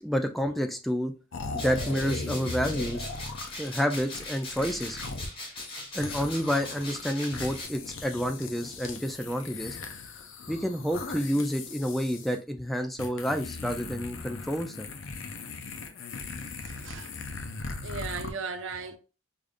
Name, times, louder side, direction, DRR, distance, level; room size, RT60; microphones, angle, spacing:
voice 1, 0.0-1.1 1.5-3.1 3.6-5.0 5.9-9.8 10.5-14.9, equal, ahead, 0.3 m, -29 dB
sound 1, 1.3-5.3 5.6-12.3 13.0-18.3, left 3 dB, 60° left, 0.5 m, -38 dB
sound 2, 1.6-7.6, left 2 dB, 25° left, 1.3 m, -40 dB
voice 2, 16.6-17.1 17.8-19.0, right 4 dB, 65° right, 0.5 m, -37 dB
4.9 x 2.5 x 2.5 m
head